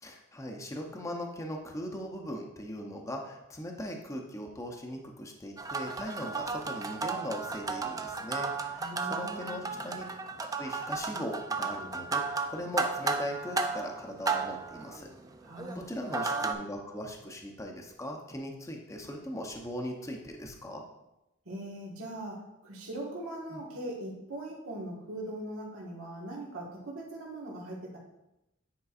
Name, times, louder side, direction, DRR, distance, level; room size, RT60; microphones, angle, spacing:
voice 1, 0.0-10.0 10.6-12.2 12.5-15.1 15.7-20.8 23.5-23.6, equal, 15° left, 1 dB, 0.7 m, -39 dB
sound 1, 5.6-16.5, right 4 dB, 15° right, 0.4 m, -34 dB
voice 2, 8.8-9.6 15.4-15.8 21.4-28.0, right 1 dB, 90° right, -3 dB, 1.5 m, -40 dB
9.4 x 4.5 x 2.4 m, 0.92 s
head